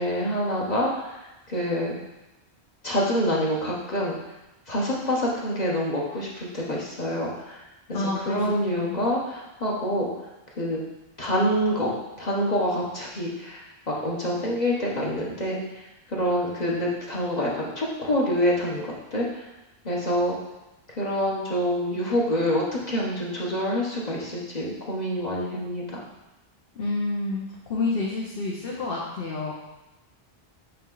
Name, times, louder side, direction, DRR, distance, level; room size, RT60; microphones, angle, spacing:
voice 1, 0.0-1.9 2.8-4.2 4.7-8.0 8.3-10.1 10.6-10.8 11.2-15.6 16.1-19.4 19.8-20.3 21.0-26.0, equal, 40° left, -4 dB, 1.2 m, -26 dB
voice 2, 7.9-9.0 26.8-29.5, left 3 dB, 60° left, -4 dB, 1.1 m, -29 dB
8.4 x 3.2 x 3.9 m, 1.0 s
omnidirectional pair, 1.1 m